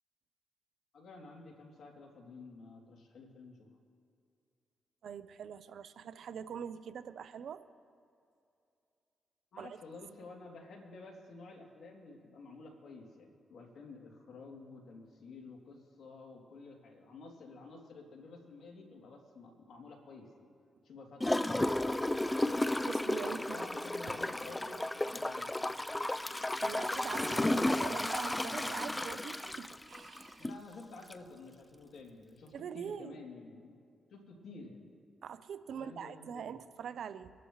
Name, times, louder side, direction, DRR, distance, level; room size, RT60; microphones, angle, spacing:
voice 1, 0.9-3.7 9.5-20.4 20.8-22.7 23.2-25.6 30.4-33.8 34.1-34.9 35.7-36.6, left 3 dB, 70° left, 0 dB, 2.8 m, -51 dB
voice 2, 5.0-7.6 9.6-9.8 22.8-23.9 26.6-30.5 32.5-33.2 35.2-37.3, right 7 dB, 70° right, 13 dB, 0.7 m, -43 dB
Gurgling / Toilet flush, 21.2-30.6 31.1-31.2, left 1 dB, 15° left, 0.5 m, -33 dB
25.0 x 12.0 x 3.2 m, 2.5 s
supercardioid pair, 55°, 0 cm